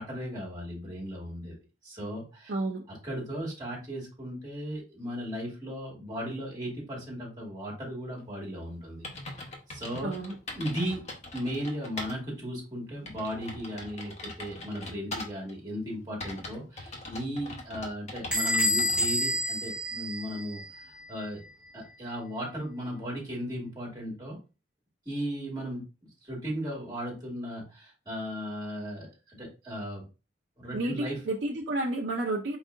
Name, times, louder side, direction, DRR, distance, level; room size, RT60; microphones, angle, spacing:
voice 1, 0.0-1.6 1.8-2.5 2.9-9.1 9.3-10.1 10.5-11.0 11.3-21.4 21.7-24.4 25.1-25.8 26.2-30.0 30.6-31.2, equal, 20° right, 2.2 m, -36 dB
voice 2, 2.5-2.8 10.0-10.4 30.7-32.6, right 2 dB, 65° right, 0.6 m, -31 dB
sound 1, 8.6-8.7 9.0-12.2 12.6-12.7 13.1-15.5 16.2-19.1, left 2 dB, 40° left, 1.1 m, -41 dB
Bell / Door, 18.3-20.8, equal, 5° right, 1.5 m, -28 dB
4.5 x 4.1 x 2.5 m
head